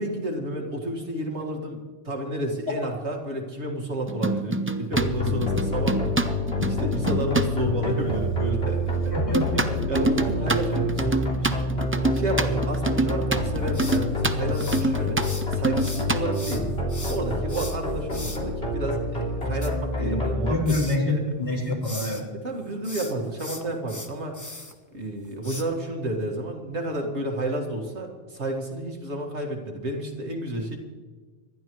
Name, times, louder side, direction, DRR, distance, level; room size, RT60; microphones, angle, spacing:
voice 1, 0.0-1.8 2.0-6.0 6.6-9.1 9.9-11.6 12.1-15.2 15.5-16.6 17.1-20.8 21.1-21.2 22.3-24.4 24.9-30.8, right 1 dB, 65° right, 1 dB, 2.2 m, -31 dB
sound 1, 4.1-7.5 9.3-16.2, right 2 dB, 15° right, 0.4 m, -26 dB
sound 2, 4.9-20.5, left 1 dB, 60° left, 3.6 m, -27 dB
voice 2, 9.1-9.7 20.0-22.2, left 2 dB, 35° left, -5 dB, 4.0 m, -27 dB
sound 3, 13.7-15.5 15.8-18.4 19.4-20.4 20.7-21.0 21.4-22.2 22.7-24.7 25.4-25.6, left 2 dB, 15° left, 1.1 m, -38 dB
25.5 x 12.0 x 3.1 m, 1.4 s
omnidirectional pair, 1.2 m